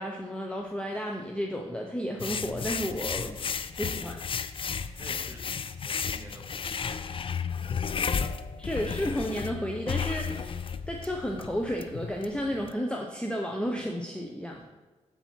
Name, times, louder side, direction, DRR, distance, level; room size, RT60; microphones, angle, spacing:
voice 1, 0.0-3.4 3.8-4.2 8.6-14.6, equal, 10° left, 0 dB, 0.7 m, -32 dB
sound 1, 2.2-12.7, left 6 dB, 45° left, 0.4 m, -33 dB
voice 2, 5.0-5.4 5.8-7.7 10.8-10.9 14.6-14.7, right 1 dB, 20° right, -2 dB, 2.0 m, -50 dB
6.8 x 4.4 x 4.4 m, 1.2 s
cardioid pair, 60°, 13 cm